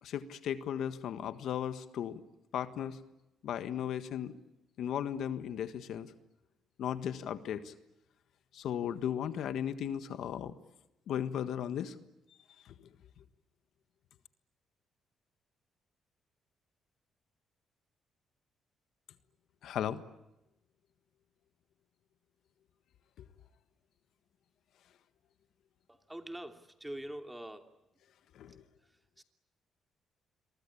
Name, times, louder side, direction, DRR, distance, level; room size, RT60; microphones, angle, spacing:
voice 1, 0.0-2.2 2.5-3.0 3.4-4.4 4.8-6.1 6.8-7.7 8.5-10.5 11.1-11.9 12.6-12.7 19.6-20.0 28.3-28.6, left 9 dB, 75° left, 11 dB, 1.5 m, -36 dB
voice 2, 25.9-27.7 29.2-29.3, right 1 dB, 10° right, 6 dB, 2.9 m, -44 dB
28.0 x 23.5 x 8.5 m, 0.93 s
cardioid pair, 90°, 0 cm